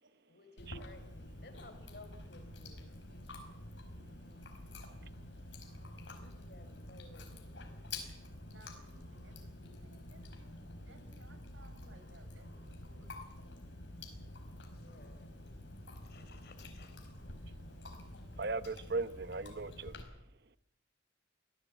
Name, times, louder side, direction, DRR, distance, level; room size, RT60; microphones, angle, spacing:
voice 1, 0.3-3.3 6.1-7.8 14.7-15.5 15.9-17.1, left 2 dB, 55° left, 4.1 m, -58 dB
Chewing mastication, 0.6-20.0, left 2 dB, 70° left, 4.8 m, -49 dB
voice 2, 8.4-13.1, right 2 dB, 75° right, 5.5 m, -62 dB
voice 3, 18.4-20.0, right 3 dB, 55° right, 0.9 m, -37 dB
24.5 x 17.0 x 8.5 m
head